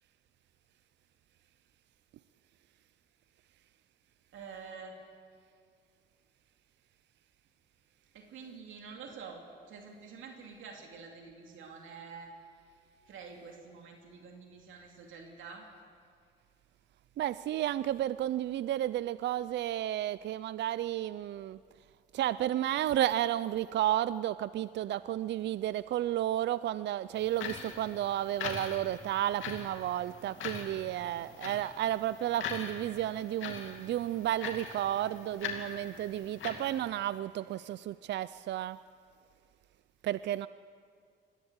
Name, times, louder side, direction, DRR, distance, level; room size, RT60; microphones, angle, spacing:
voice 1, 4.3-4.9 8.1-9.4 9.7-12.3 13.1-15.7, right 5 dB, 80° right, 1 dB, 2.7 m, -47 dB
voice 2, 17.2-21.6 22.1-38.8 40.0-40.5, right 12 dB, 60° right, 16 dB, 0.4 m, -32 dB
sound 1, 27.1-36.8, left 6 dB, 80° left, 2.6 m, -42 dB
21.0 x 15.0 x 8.1 m, 2.2 s
cardioid pair, 90°, 20 cm